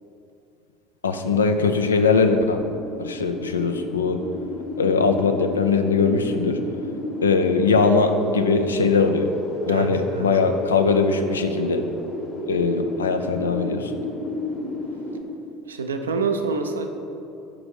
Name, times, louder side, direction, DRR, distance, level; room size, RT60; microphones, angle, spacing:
voice 1, 1.0-2.6 3.0-4.2 4.8-6.6 7.2-9.3 9.7-11.9 12.5-13.9, left 4 dB, 80° left, 7 dB, 0.4 m, -21 dB
sound 1, 2.2-15.2, left 1 dB, 40° left, 1.3 m, -31 dB
voice 2, 9.7-10.3 15.7-16.9, right 4 dB, 80° right, 6 dB, 0.5 m, -26 dB
6.0 x 5.0 x 5.0 m, 2.7 s
figure-of-eight pair, 70°, 0 cm